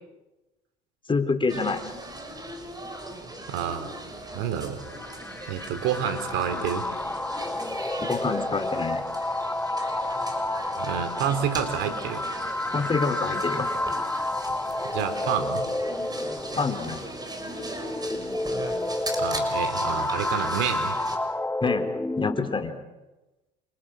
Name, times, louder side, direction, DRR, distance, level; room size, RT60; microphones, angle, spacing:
voice 1, 1.1-1.8 8.0-9.0 12.7-13.7 16.6-17.0 21.6-21.9 22.2-22.7, left 4 dB, 25° left, 7 dB, 4.0 m, -26 dB
sound 1, 1.5-21.2, right 2 dB, 20° right, 6.1 m, -38 dB
voice 2, 3.5-3.9 4.3-4.8 5.5-6.9 10.7-12.2 14.9-15.6 19.2-21.0, right 8 dB, 70° right, 9 dB, 4.1 m, -28 dB
sound 2, 4.8-22.8, left 2 dB, 10° left, 1.1 m, -30 dB
29.5 x 26.5 x 6.5 m, 1.1 s
hypercardioid pair, 75°, 20 cm